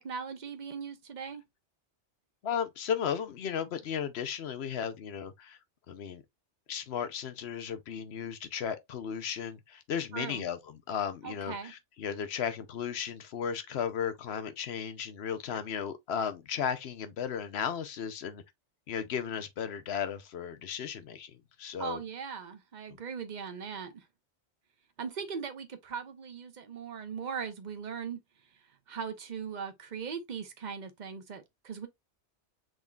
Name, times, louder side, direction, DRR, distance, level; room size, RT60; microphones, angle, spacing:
voice 1, 0.0-1.4 10.1-10.4 11.2-11.7 21.8-24.0 25.0-28.2 28.9-31.9, right 6 dB, 40° right, 0.9 m, -39 dB
voice 2, 2.4-5.6 5.9-6.2 6.7-18.4 18.9-22.0, left 8 dB, 65° left, 1.0 m, -35 dB
6.3 x 3.6 x 2.3 m
omnidirectional pair, 1.2 m